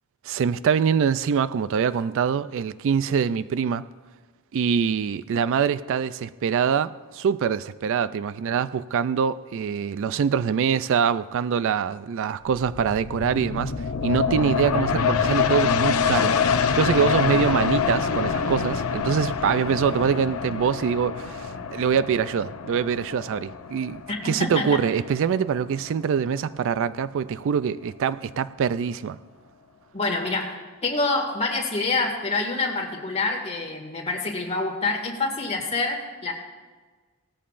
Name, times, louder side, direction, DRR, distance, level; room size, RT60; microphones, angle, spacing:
voice 1, 0.2-3.9 4.5-29.2, right 7 dB, 60° right, 0.3 m, -24 dB
sound 1, 12.5-25.8 26.2-26.3, left 6 dB, 70° left, 0.7 m, -26 dB
voice 2, 24.1-24.8 29.9-30.5 30.8-36.4, left 3 dB, 30° left, 2.0 m, -26 dB
17.5 x 14.0 x 2.5 m
head